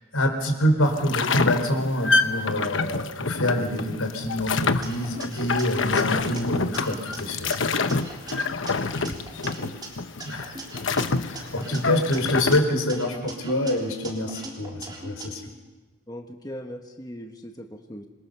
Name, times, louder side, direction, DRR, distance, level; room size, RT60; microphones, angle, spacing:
voice 1, 0.1-7.5 10.2-10.5 11.2-15.4, left 1 dB, 85° left, 4 dB, 4.6 m, -26 dB
sound 1, 0.9-12.6, left 3 dB, 60° left, 1.1 m, -27 dB
sound 2, 4.8-7.2 7.5-9.9 10.2-12.6 12.9-15.3, right 2 dB, 20° right, 3.6 m, -40 dB
voice 2, 9.0-9.7 16.1-18.1, equal, 20° left, 4 dB, 1.3 m, -40 dB
26.5 x 22.5 x 6.9 m, 1.2 s
head